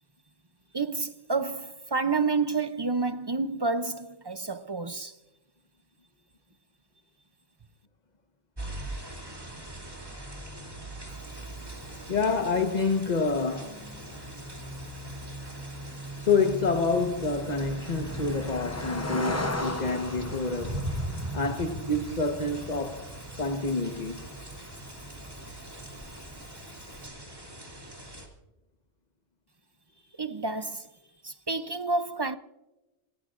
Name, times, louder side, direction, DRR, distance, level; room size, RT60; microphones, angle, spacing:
voice 1, 0.7-5.1 30.2-30.9 31.2-32.4, right 4 dB, 35° right, 0.4 m, -29 dB
sound 1, 8.6-28.3, right 1 dB, 20° right, 2.6 m, -40 dB
Cricket, 11.1-27.1, left 2 dB, 15° left, 0.8 m, -41 dB
voice 2, 12.1-13.8 16.2-23.0 23.4-24.2 30.2-30.3, left 4 dB, 40° left, 1.2 m, -28 dB
27.0 x 17.5 x 2.5 m
omnidirectional pair, 1.2 m